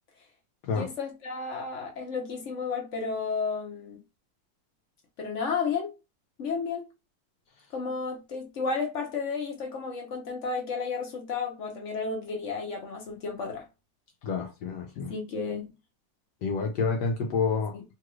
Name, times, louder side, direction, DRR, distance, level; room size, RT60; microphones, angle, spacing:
voice 1, 0.7-4.0 5.2-5.9 6.4-6.8 7.7-13.7 15.1-15.6 17.7-17.8, left 5 dB, 50° left, 0.9 m, -32 dB
voice 2, 14.2-15.1 16.4-17.7, left 5 dB, 75° left, 1.1 m, -28 dB
3.1 x 2.4 x 3.0 m
omnidirectional pair, 2.0 m